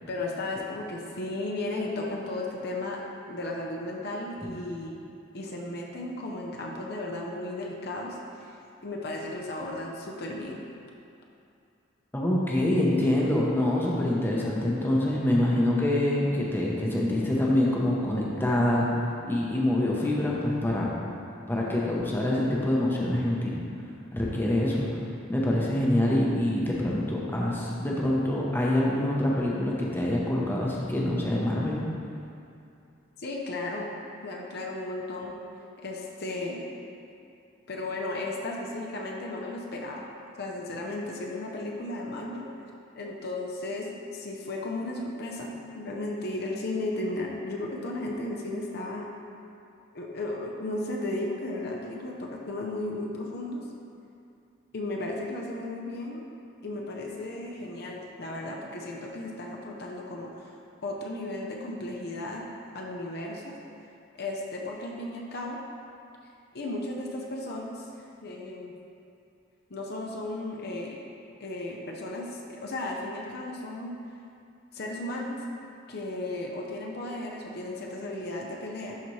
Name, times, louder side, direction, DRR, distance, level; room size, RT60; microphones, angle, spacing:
voice 1, 0.0-3.0 3.3-5.0 5.3-8.6 8.8-10.6 33.2-33.9 34.2-35.3 35.8-36.6 37.7-40.1 40.4-42.5 43.0-49.1 49.9-53.6 54.7-56.2 56.6-62.4 62.7-63.5 64.2-65.6 66.5-68.7 69.7-71.0 71.4-73.9 74.7-75.4 75.9-79.0, left 2 dB, 55° left, -1 dB, 0.6 m, -35 dB
voice 2, 12.1-18.9 19.2-21.0 21.5-23.6 24.1-25.0 25.3-31.8, left 1 dB, 10° left, -4 dB, 0.8 m, -25 dB
11.5 x 4.3 x 3.2 m, 2.6 s
head